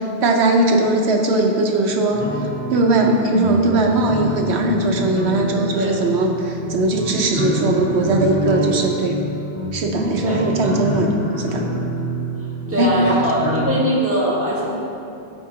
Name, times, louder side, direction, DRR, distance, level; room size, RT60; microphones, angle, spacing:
voice 1, 0.0-2.2 2.7-9.2 9.7-11.1 11.4-11.7 12.8-13.0, right 2 dB, 85° right, 2 dB, 1.1 m, -19 dB
sound 1, 2.1-13.7, equal, 30° left, 1.1 m, -26 dB
voice 2, 12.7-14.7, right 1 dB, 10° right, -7 dB, 1.5 m, -21 dB
13.5 x 4.6 x 2.8 m, 2.7 s
omnidirectional pair, 1.1 m